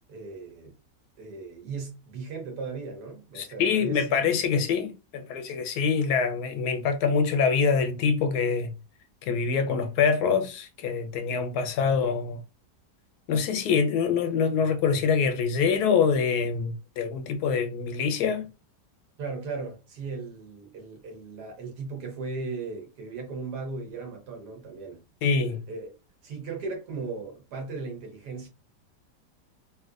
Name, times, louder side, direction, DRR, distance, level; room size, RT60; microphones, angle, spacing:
voice 1, 0.1-0.8 1.2-4.5 19.2-25.0 25.7-26.0 26.2-28.5, right 4 dB, 70° right, 1.4 m, -37 dB
voice 2, 3.4-8.7 9.2-12.4 13.3-18.5 25.2-25.6, left 5 dB, 75° left, 1.1 m, -25 dB
3.3 x 2.7 x 2.4 m
omnidirectional pair, 1.8 m